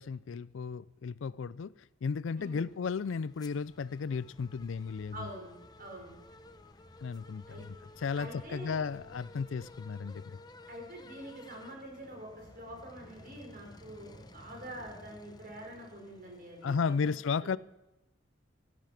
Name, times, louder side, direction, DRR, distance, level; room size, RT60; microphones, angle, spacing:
voice 1, 0.0-1.7 2.0-5.3 7.0-7.8 8.0-10.2 16.6-17.6, left 5 dB, 80° left, 0.4 m, -34 dB
sound 1, 2.4-17.0, left 2 dB, 20° left, 0.8 m, -54 dB
voice 2, 2.4-2.7 5.1-6.2 7.5-7.7 8.1-8.8 10.7-17.6, right 1 dB, 50° right, 5.2 m, -46 dB
sound 2, 3.6-9.8, left 1 dB, 80° right, 6.4 m, -61 dB
15.5 x 12.5 x 5.8 m
head